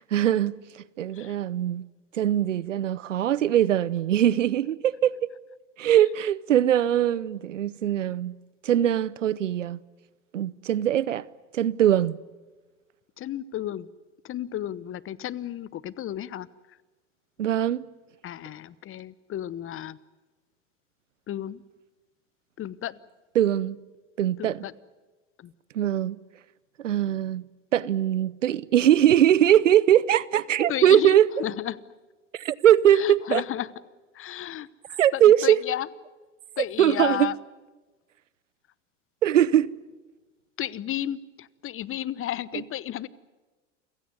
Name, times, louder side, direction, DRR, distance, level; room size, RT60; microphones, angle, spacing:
voice 1, 0.1-0.6 1.0-1.8 2.1-5.1 5.8-8.4 8.6-9.8 10.3-11.3 11.5-12.2 17.4-17.8 23.4-23.8 24.2-24.6 25.7-26.2 26.8-27.4 27.7-31.3 32.3-33.4 35.0-35.6 36.8-37.3 39.2-39.7, right 11 dB, 85° right, 0.8 m, -21 dB
voice 2, 13.2-13.9 14.2-16.5 18.2-20.0 21.3-21.6 22.6-23.0 24.4-24.7 25.4-25.5 30.7-31.8 32.9-33.7 34.1-35.9 36.6-37.4 40.6-43.1, left 12 dB, 35° left, 1.0 m, -33 dB
28.5 x 16.5 x 9.4 m
hypercardioid pair, 80°, 36 cm